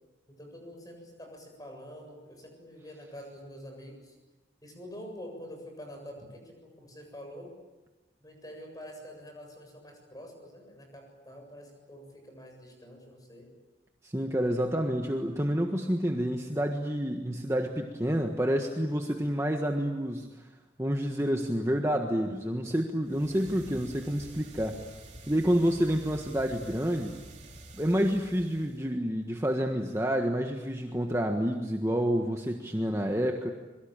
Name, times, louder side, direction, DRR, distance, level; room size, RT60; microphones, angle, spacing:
voice 1, 0.3-4.2 4.6-7.5 8.2-13.5, equal, 20° left, 3 dB, 7.5 m, -46 dB
voice 2, 14.0-20.3 20.8-24.8 25.3-27.2 27.8-33.5, equal, 15° right, 3 dB, 1.5 m, -28 dB
sound 1, 23.0-28.9, right 1 dB, 35° right, 3.5 m, -48 dB
26.5 x 23.0 x 8.9 m, 1.2 s
head